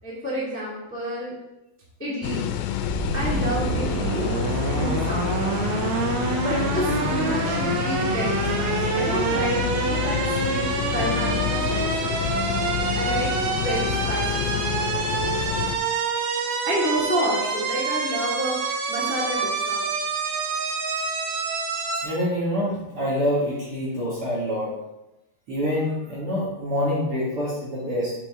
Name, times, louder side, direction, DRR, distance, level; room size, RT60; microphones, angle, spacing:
voice 1, 0.0-1.3 2.0-2.5 3.1-4.2 4.7-5.6 6.4-12.4 12.9-14.9 16.6-19.9, equal, 5° left, -7 dB, 1.0 m, -30 dB
sound 1, 2.2-15.8, left 11 dB, 85° left, 2.4 m, -28 dB
sound 2, 2.8-22.0, right 4 dB, 90° right, 2.8 m, -27 dB
Bowed string instrument, 5.0-10.8, right 3 dB, 30° left, 3.0 m, -37 dB
voice 2, 22.0-24.7 25.5-28.2, equal, 45° right, -6 dB, 2.2 m, -26 dB
7.1 x 6.1 x 3.6 m, 0.93 s
omnidirectional pair, 4.2 m